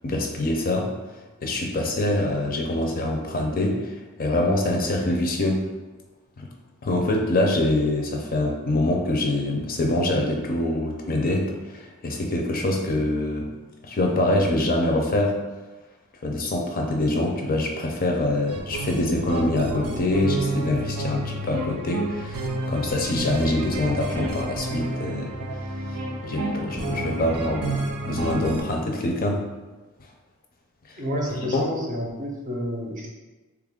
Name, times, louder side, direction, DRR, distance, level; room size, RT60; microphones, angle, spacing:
voice 1, 0.0-0.9 1.4-5.6 6.4-6.5 6.8-13.5 13.8-15.3 16.2-25.3 26.2-29.4 31.5-31.7, left 1 dB, 40° left, 1 dB, 0.5 m, -24 dB
sound 1, 18.5-28.6, right 2 dB, 85° right, 0.5 m, -30 dB
voice 2, 31.0-33.1, equal, 35° right, -1 dB, 0.6 m, -29 dB
3.3 x 2.4 x 3.6 m, 1.2 s
head